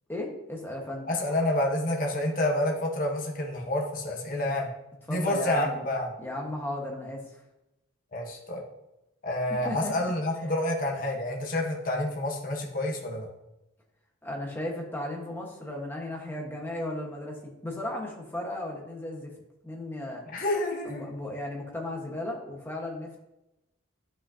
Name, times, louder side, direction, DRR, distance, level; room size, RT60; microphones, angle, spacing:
voice 1, 0.1-1.1 5.1-5.8 6.2-7.4 9.6-9.9 14.2-19.3 19.6-20.2 20.8-23.2, left 1 dB, 10° left, 0 dB, 1.3 m, -35 dB
voice 2, 1.1-4.7 5.1-6.1 8.1-8.6 9.2-13.3 20.3-21.1, left 1 dB, 40° left, -1 dB, 1.2 m, -28 dB
10.5 x 6.2 x 2.8 m, 0.92 s
head